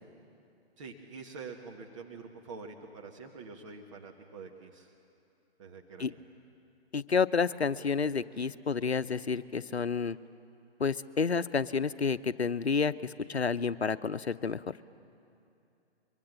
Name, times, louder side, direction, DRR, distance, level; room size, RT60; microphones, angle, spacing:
voice 1, 0.8-4.9 5.6-6.2, right 4 dB, 30° right, 1 dB, 1.4 m, -46 dB
voice 2, 6.9-10.2 10.8-14.6, left 5 dB, 75° left, 13 dB, 0.8 m, -30 dB
24.5 x 23.5 x 7.5 m, 2.6 s
figure-of-eight pair, 130°, 32 cm